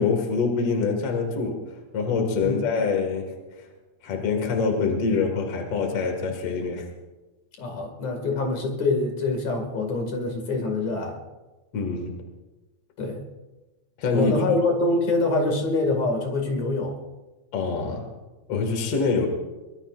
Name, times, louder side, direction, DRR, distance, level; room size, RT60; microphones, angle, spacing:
voice 1, 0.0-3.7 4.0-6.9 11.7-12.2 14.0-14.6 17.5-18.1 18.5-19.3, left 4 dB, 55° left, 3 dB, 2.8 m, -25 dB
voice 2, 7.6-11.2 13.0-13.2 14.1-17.0, left 2 dB, 70° left, 3 dB, 3.5 m, -25 dB
23.5 x 20.5 x 2.5 m, 1.1 s
omnidirectional pair, 3.3 m